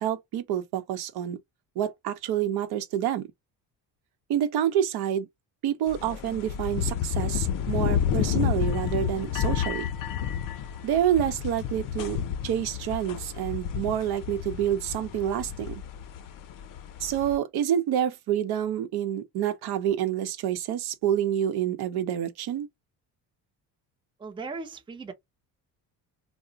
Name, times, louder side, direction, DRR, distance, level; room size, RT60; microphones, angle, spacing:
voice 1, 0.0-1.4 1.8-3.3 4.3-5.3 5.6-9.9 10.8-12.2 12.4-15.8 17.0-22.7, right 10 dB, 75° right, 0.7 m, -28 dB
sound 1, 5.9-17.4, left 9 dB, 55° left, 0.6 m, -30 dB
voice 2, 24.2-25.1, right 4 dB, 15° right, 0.5 m, -37 dB
2.4 x 2.1 x 3.8 m
cardioid pair, 125°, 38 cm